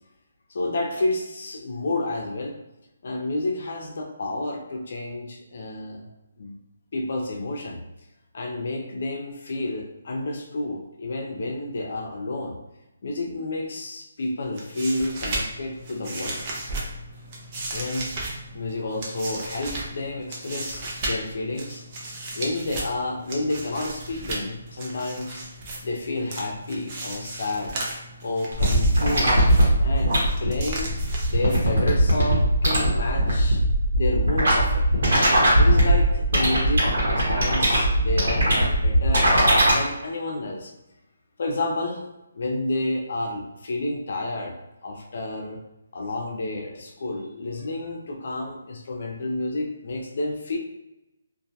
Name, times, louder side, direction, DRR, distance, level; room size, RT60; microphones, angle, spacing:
voice 1, 0.5-2.6 3.0-6.1 6.4-6.6 6.9-7.8 8.3-12.6 13.0-16.4 17.7-18.1 18.5-21.8 22.3-25.4 25.8-27.7 28.2-29.4 29.8-31.0 31.3-33.6 33.9-35.0 35.6-39.3 39.6-40.7 41.4-42.1 42.3-44.5 44.8-45.6 45.9-50.6, left 2 dB, 60° left, 1 dB, 0.5 m, -30 dB
sound 1, 14.4-32.0, right 2 dB, 30° right, 0.5 m, -35 dB
sound 2, 28.5-39.7, equal, 65° right, 0.9 m, -20 dB
2.2 x 2.1 x 2.7 m, 0.94 s
hypercardioid pair, 160°, 0 cm